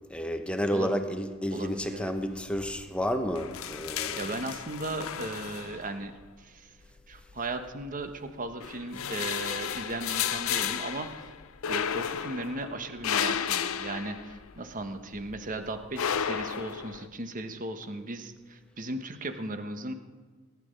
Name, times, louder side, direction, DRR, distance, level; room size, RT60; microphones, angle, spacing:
voice 1, 0.1-4.2, equal, 5° left, 6 dB, 1.0 m, -31 dB
voice 2, 1.5-2.1 4.2-6.7 7.1-11.3 11.7-19.9, right 2 dB, 40° right, 8 dB, 1.1 m, -37 dB
sound 1, 1.8-2.3 2.6-2.8 3.1-6.2 7.1-8.1 8.5-14.8 15.1-17.1, left 8 dB, 75° left, 0.6 m, -33 dB
18.5 x 11.0 x 5.1 m, 1.4 s
head